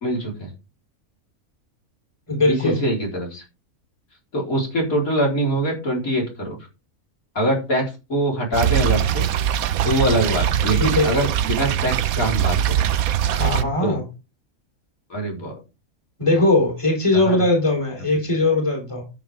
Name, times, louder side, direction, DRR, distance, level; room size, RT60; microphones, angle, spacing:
voice 1, 0.0-0.5 2.5-3.4 4.3-6.6 7.3-9.3 9.8-12.8 13.8-14.0 15.1-15.5 17.1-17.4, right 1 dB, 70° left, 4.7 m, -23 dB
voice 2, 2.3-2.8 10.8-11.2 13.3-14.1 16.2-19.0, left 2 dB, 20° left, 3.6 m, -20 dB
sound 1, 8.5-13.6, right 10 dB, 75° right, 1.1 m, -21 dB
13.0 x 7.8 x 3.6 m
omnidirectional pair, 1.5 m